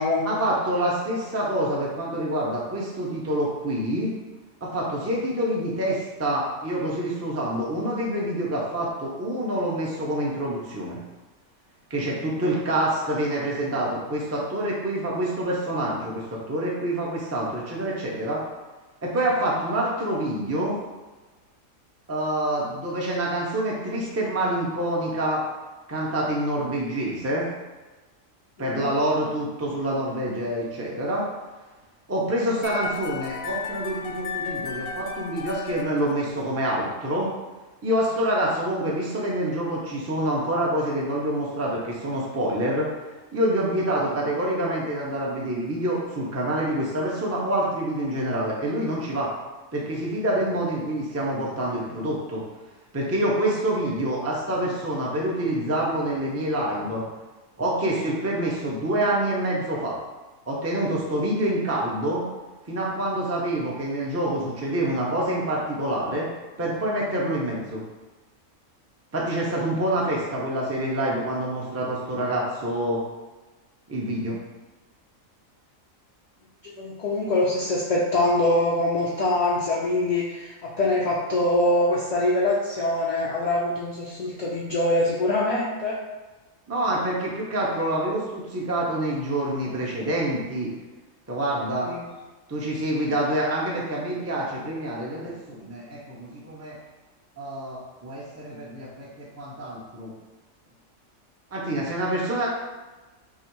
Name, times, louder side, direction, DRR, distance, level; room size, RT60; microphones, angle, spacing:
voice 1, 0.2-4.2 4.6-11.0 11.9-18.4 19.0-20.8 22.1-25.4 25.9-27.5 28.6-31.3 32.1-37.3 37.8-42.9 43.3-49.3 49.7-52.4 52.9-57.0 57.6-60.0 60.5-62.2 62.7-66.3 66.6-67.8 69.1-73.0 73.9-74.4 86.7-90.7 91.3-91.9 92.5-96.8 97.4-100.1 101.5-102.5, right 1 dB, 15° right, -4 dB, 0.6 m, -26 dB
voice 2, 28.6-28.9 76.6-86.0 91.8-92.0, left 1 dB, 45° left, -6 dB, 0.5 m, -24 dB
sound 1, 32.6-36.7, left 6 dB, 85° left, 1.1 m, -34 dB
5.6 x 2.0 x 4.6 m, 1.2 s
omnidirectional pair, 1.4 m